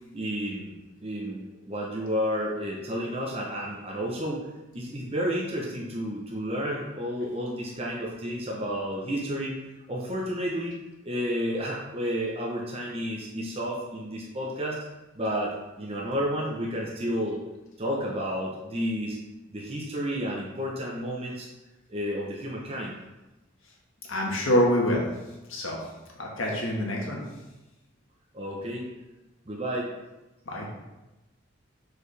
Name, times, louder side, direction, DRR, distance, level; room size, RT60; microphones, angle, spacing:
voice 1, 0.1-4.5 4.7-9.5 9.9-14.8 15.1-17.4 17.8-19.2 19.5-21.5 21.9-22.9 28.3-28.9 29.5-29.9, equal, 30° right, -3 dB, 0.9 m, -31 dB
voice 2, 24.1-25.1 25.5-25.8 26.2-27.2 30.4-30.7, equal, 70° left, -2 dB, 1.5 m, -25 dB
6.9 x 4.8 x 3.4 m, 1.0 s
head